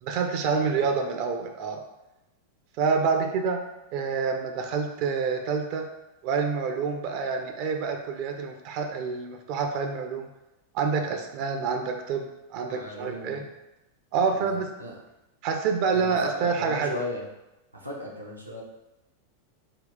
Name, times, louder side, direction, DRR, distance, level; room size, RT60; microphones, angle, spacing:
voice 1, 0.0-1.8 2.8-3.6 3.9-5.9 6.2-10.3 10.7-13.4 14.1-14.7 15.4-17.0, right 5 dB, 45° right, 4 dB, 0.4 m, -27 dB
voice 2, 0.5-0.9 12.6-13.5 14.2-14.9 15.9-17.3 17.7-18.6, equal, 85° right, -2 dB, 0.7 m, -37 dB
3.8 x 2.3 x 3.6 m, 0.95 s
figure-of-eight pair, 90°, 0 cm